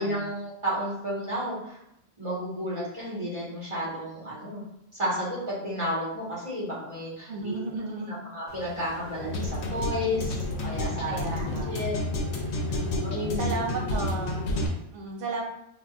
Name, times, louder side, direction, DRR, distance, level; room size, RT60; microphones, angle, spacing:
voice 1, 0.0-1.8 2.2-4.6 4.9-7.5 8.1-10.4 10.6-11.9 12.2-13.4, equal, 25° right, -7 dB, 1.1 m, -32 dB
voice 2, 7.3-8.2 8.8-9.0 10.2-10.4 11.1-11.9 12.7-15.4, right 3 dB, 80° right, 1 dB, 1.0 m, -35 dB
sound 1, 8.5-14.7, left 1 dB, 70° left, 0.8 m, -30 dB
3.7 x 2.3 x 2.3 m, 0.78 s
omnidirectional pair, 1.2 m